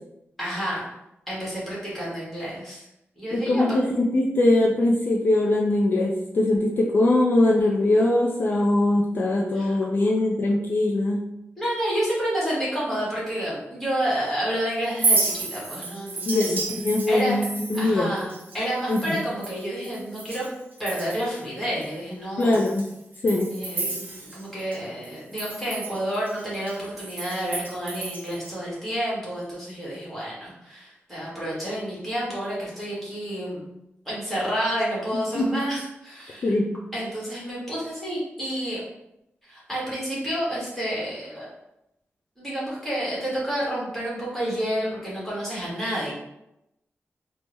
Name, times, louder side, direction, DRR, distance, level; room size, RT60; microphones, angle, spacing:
voice 1, 0.4-0.9 1.3-2.8 3.2-3.6 9.5-9.8 11.6-16.6 17.1-17.5 17.7-18.3 18.5-20.4 20.8-22.6 23.5-33.7 34.0-36.5 36.9-38.8 39.5-41.5 42.4-46.1, equal, 5° left, -7 dB, 1.3 m, -29 dB
voice 2, 3.3-11.2 16.3-18.1 18.9-19.2 22.4-22.9 23.2-23.5 35.3-35.5 36.4-36.7, left 2 dB, 50° left, -2 dB, 0.3 m, -22 dB
Chink clink, 14.8-20.5 20.8-21.4 21.8-21.9 22.4-24.8 25.0-28.5, right 3 dB, 45° right, 0.6 m, -31 dB
3.3 x 2.0 x 3.0 m, 0.85 s
wide cardioid pair, 155°, 4 cm